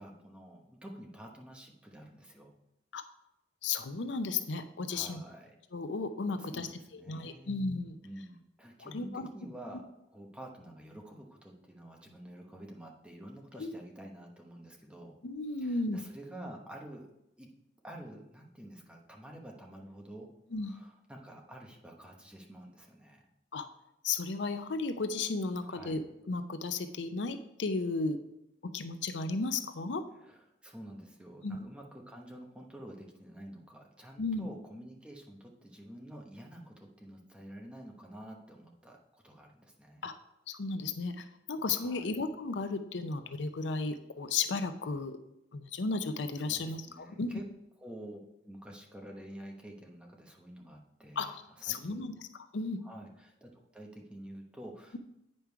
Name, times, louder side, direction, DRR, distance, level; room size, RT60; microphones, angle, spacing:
voice 1, 0.0-2.5 4.9-5.6 6.4-7.6 8.0-15.2 15.6-17.1 17.4-17.5 17.8-20.3 20.6-23.3 25.6-26.0 30.2-40.1 41.8-42.1 46.4-47.4 47.8-52.1 52.8-55.0, right 1 dB, 5° right, 0 dB, 1.0 m, -49 dB
voice 2, 3.6-5.2 5.7-6.7 6.9-8.0 8.8-9.3 13.6-13.7 15.2-16.0 20.5-20.7 23.5-23.7 24.0-28.2 28.6-30.0 31.4-31.6 34.2-34.5 40.0-40.1 40.5-45.2 45.5-47.4 51.2-52.3 52.5-52.8, left 3 dB, 85° left, 9 dB, 0.6 m, -34 dB
8.8 x 5.4 x 4.6 m, 0.85 s
head